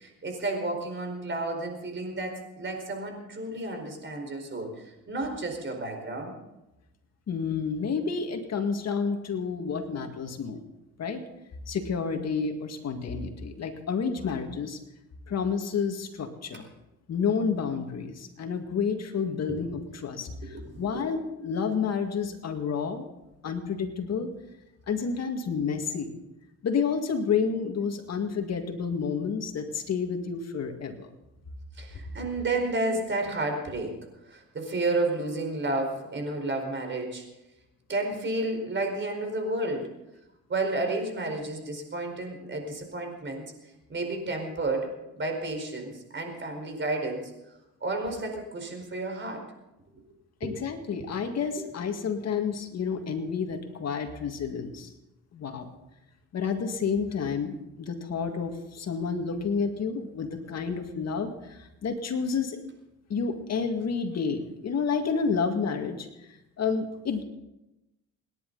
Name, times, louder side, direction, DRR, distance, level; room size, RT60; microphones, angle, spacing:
voice 1, 0.0-6.3 20.5-21.0 31.7-34.0 34.2-37.3 37.9-39.9 40.5-43.4 43.9-44.9 45.1-47.2 47.8-49.4 50.4-50.6 51.6-51.7, right 2 dB, 40° right, 4 dB, 4.8 m, -31 dB
voice 2, 7.3-10.6 11.0-11.2 11.7-14.8 15.3-16.7 17.1-23.1 23.4-24.3 24.9-26.2 26.6-31.1 50.4-54.9 55.3-55.7 56.3-62.6 63.1-67.2, left 5 dB, 60° left, 5 dB, 2.0 m, -30 dB
28.5 x 10.5 x 4.0 m, 0.94 s
cardioid pair, 90°, 30 cm